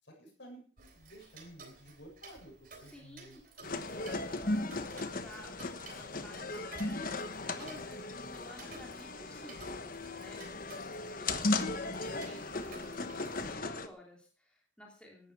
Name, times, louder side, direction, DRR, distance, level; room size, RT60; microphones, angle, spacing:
voice 1, 0.0-2.5 2.8-4.3 4.6-5.0 12.0-12.3, equal, 65° left, 2 dB, 7.2 m, -54 dB
Tick-tock, 0.8-13.5, right 4 dB, 45° right, 3.4 m, -55 dB
voice 2, 2.8-3.4 3.8-9.9 10.2-10.5 11.2-15.3, left 1 dB, 5° left, -1 dB, 3.0 m, -54 dB
sound 1, 3.6-13.9, left 2 dB, 45° left, 1.2 m, -37 dB
17.0 x 11.5 x 4.8 m, 0.41 s
head